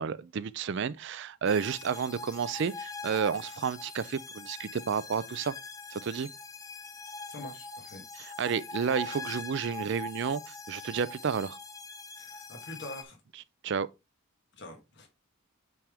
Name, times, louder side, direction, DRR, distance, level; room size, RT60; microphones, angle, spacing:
voice 1, 0.0-5.6 5.9-6.3 8.2-11.6 13.6-13.9, right 6 dB, 55° right, 0.4 m, -31 dB
sound 1, 1.5-13.0, left 3 dB, 15° left, 0.5 m, -42 dB
voice 2, 7.3-8.0 12.2-13.2 14.5-15.1, left 1 dB, 55° left, 1.3 m, -45 dB
8.7 x 3.5 x 3.4 m
head